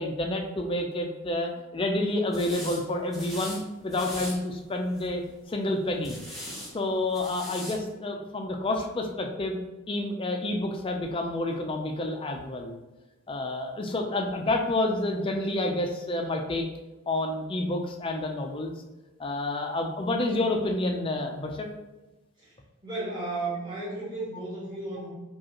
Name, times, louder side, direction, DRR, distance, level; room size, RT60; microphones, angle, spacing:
voice 1, 0.0-5.2 5.5-6.2 6.7-9.6 9.9-12.7 13.3-16.7 17.1-18.7 19.2-21.7, left 2 dB, 25° left, 3 dB, 0.4 m, -29 dB
sound 1, 2.3-2.8 3.1-3.6 3.9-4.3 4.9-5.3 6.0-6.7 7.1-7.8, equal, ahead, 0.8 m, -39 dB
voice 2, 22.8-25.1, right 2 dB, 20° right, -7 dB, 1.4 m, -34 dB
4.9 x 2.4 x 2.9 m, 1.1 s
head